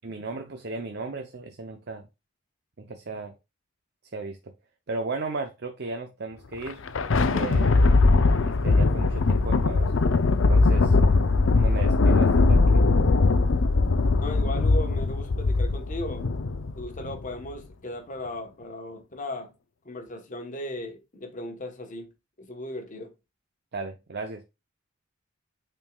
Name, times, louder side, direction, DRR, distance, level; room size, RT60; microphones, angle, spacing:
voice 1, 0.0-2.0 2.8-3.3 4.1-4.5 4.9-6.8 7.2-7.8 8.4-9.9 10.5-11.0 11.6-12.8 23.7-24.4, right 3 dB, 55° right, 0.7 m, -35 dB
Thunder, 6.5-17.3, left 3 dB, 70° left, 0.6 m, -21 dB
voice 2, 14.2-16.3 16.8-19.5 19.8-22.1 22.4-23.1, left 1 dB, 40° left, 1.1 m, -37 dB
8.9 x 4.5 x 2.3 m
head